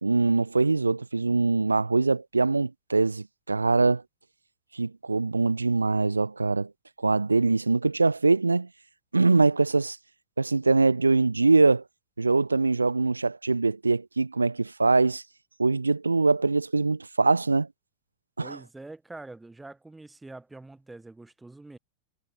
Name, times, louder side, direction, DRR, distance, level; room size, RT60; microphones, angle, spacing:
voice 1, 0.0-4.0 4.7-6.7 7.0-8.7 9.1-10.0 10.4-11.8 12.2-15.2 15.6-17.7 18.4-18.6, right 3 dB, 80° right, 0.3 m, -23 dB
voice 2, 18.4-21.8, right 2 dB, 5° right, 1.5 m, -45 dB
figure-of-eight pair, 90°, 0 cm